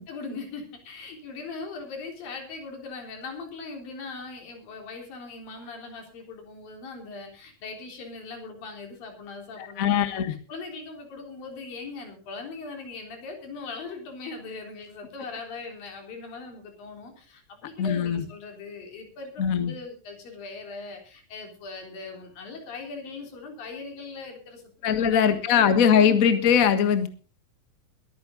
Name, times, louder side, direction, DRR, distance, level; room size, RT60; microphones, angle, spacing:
voice 1, 0.0-10.1 10.5-25.8, left 4 dB, 80° left, 3 dB, 5.2 m, -40 dB
voice 2, 9.8-10.3 17.8-18.2 19.4-19.7 24.8-27.1, left 8 dB, 65° left, 9 dB, 0.8 m, -21 dB
22.0 x 9.5 x 3.9 m, 0.36 s
omnidirectional pair, 4.0 m